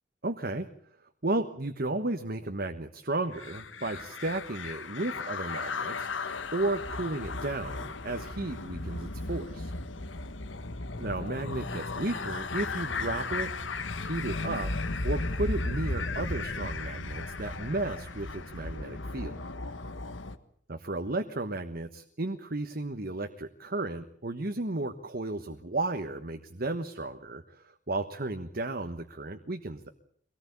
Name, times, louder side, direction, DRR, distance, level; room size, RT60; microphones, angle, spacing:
voice 1, 0.2-0.7 1.2-6.1 6.5-9.7 11.0-13.5 14.0-14.7 15.0-19.4 20.7-29.9, right 2 dB, 50° right, 7 dB, 1.3 m, -34 dB
sound 1, 3.3-20.4, left 3 dB, 80° left, 1.5 m, -35 dB
24.5 x 18.0 x 8.5 m, 0.62 s
head